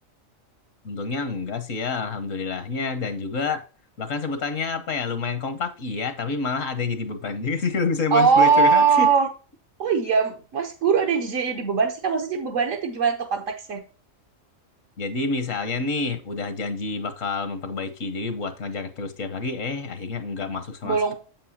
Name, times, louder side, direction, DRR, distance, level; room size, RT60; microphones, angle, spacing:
voice 1, 0.8-3.6 4.0-9.1 15.0-21.1, left 4 dB, 75° left, 1.5 m, -28 dB
voice 2, 8.1-9.3 9.8-13.8 20.8-21.1, right 5 dB, 75° right, 1.3 m, -21 dB
7.6 x 7.5 x 2.8 m
omnidirectional pair, 1.3 m